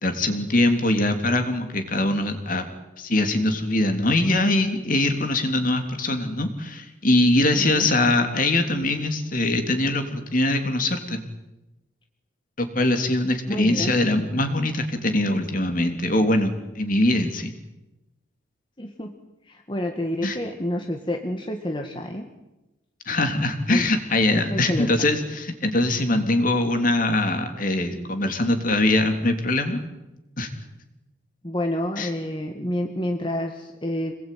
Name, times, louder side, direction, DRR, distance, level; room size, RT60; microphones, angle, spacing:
voice 1, 0.0-2.7 3.0-11.2 12.6-17.5 20.2-20.4 23.1-29.8 30.4-30.5 32.0-32.1, left 1 dB, 45° left, 6 dB, 3.3 m, -22 dB
voice 2, 7.6-7.9 13.5-14.0 18.8-19.1 19.5-22.3 23.7-23.9 24.3-25.1 31.4-34.1, left 1 dB, 25° left, 3 dB, 1.9 m, -29 dB
26.5 x 20.5 x 9.4 m, 0.99 s
head